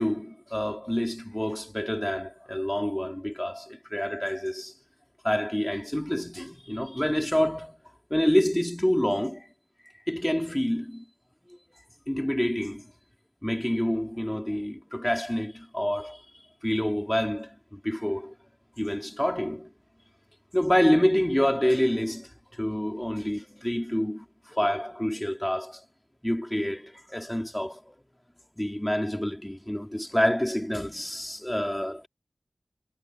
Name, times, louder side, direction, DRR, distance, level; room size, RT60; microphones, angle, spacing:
voice 1, 0.0-4.7 5.2-7.8 8.1-9.5 10.1-11.1 12.1-12.9 13.4-16.2 16.6-18.3 18.8-19.7 20.5-25.8 26.2-27.9 28.6-32.1, equal, 10° left, 3.2 m, -27 dB
wide cardioid pair, 65°, 0 cm